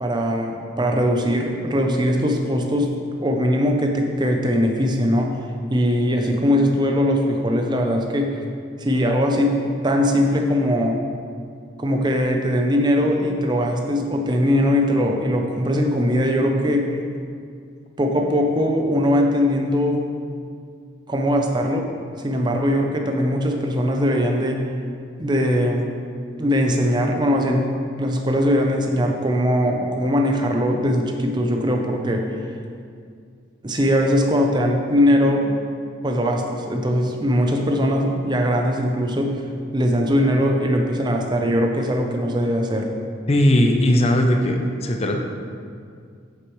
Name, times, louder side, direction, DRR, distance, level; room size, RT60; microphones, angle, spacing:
voice 1, 0.0-2.9 3.2-5.4 5.7-8.3 8.8-9.6 9.8-11.0 11.8-16.9 18.0-20.0 21.1-21.9 22.2-24.6 25.2-25.9 26.4-27.7 28.0-32.3 33.6-35.5 36.0-39.4 39.7-42.9, equal, 20° right, 2 dB, 0.6 m, -20 dB
voice 2, 43.3-45.2, left 1 dB, 30° left, 4 dB, 0.5 m, -18 dB
8.2 x 6.6 x 3.1 m, 2.2 s
head